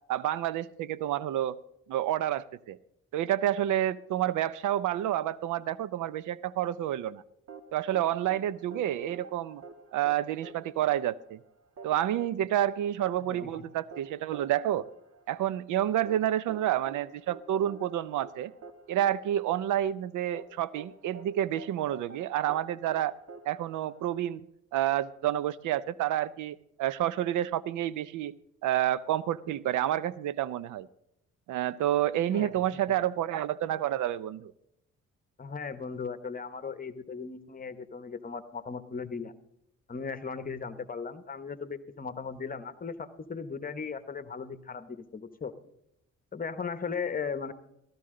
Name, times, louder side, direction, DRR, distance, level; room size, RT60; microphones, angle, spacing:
voice 1, 0.1-1.6 1.9-2.8 3.1-7.2 7.7-9.6 9.9-11.4 11.8-14.8 15.3-18.5 18.9-23.1 23.5-24.4 24.7-28.4 28.6-30.9 31.5-34.5, right 12 dB, 80° right, 19 dB, 0.6 m, -29 dB
sound 1, 7.5-24.4, right 5 dB, 55° right, 1.4 m, -49 dB
voice 2, 13.3-13.6 32.3-32.8 35.4-39.3 39.9-45.5 46.3-47.5, left 5 dB, 30° left, 12 dB, 1.0 m, -37 dB
15.0 x 13.0 x 3.7 m, 0.80 s
cardioid pair, 90°, 30 cm